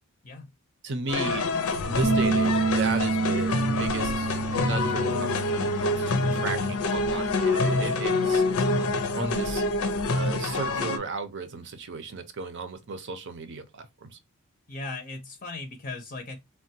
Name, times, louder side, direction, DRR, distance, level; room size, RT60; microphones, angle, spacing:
voice 1, 0.8-1.5 1.8-8.4 9.1-9.6 10.1-14.2, right 4 dB, 55° right, 0.7 m, -35 dB
sound 1, 1.1-11.0, left 3 dB, 80° left, 0.6 m, -26 dB
sound 2, 1.7-6.7, left 6 dB, 90° right, 0.7 m, -38 dB
Bass guitar, 2.0-8.3, right 5 dB, 15° right, 0.4 m, -30 dB
voice 2, 14.7-16.4, left 3 dB, 40° left, 0.6 m, -37 dB
3.4 x 2.2 x 2.7 m
head